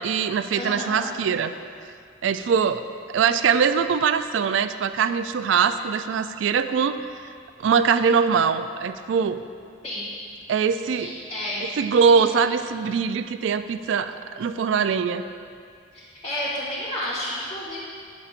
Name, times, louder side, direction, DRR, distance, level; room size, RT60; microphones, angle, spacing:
voice 1, 0.0-1.5 2.2-2.8 3.1-7.3 7.6-9.4 10.5-11.1 11.8-15.2, right 6 dB, 85° right, 11 dB, 0.3 m, -22 dB
voice 2, 0.5-1.1 9.8-10.1 10.9-11.7 12.1-12.2 15.9-17.9, left 1 dB, 30° left, -11 dB, 1.8 m, -31 dB
11.0 x 8.2 x 2.5 m, 2.3 s
head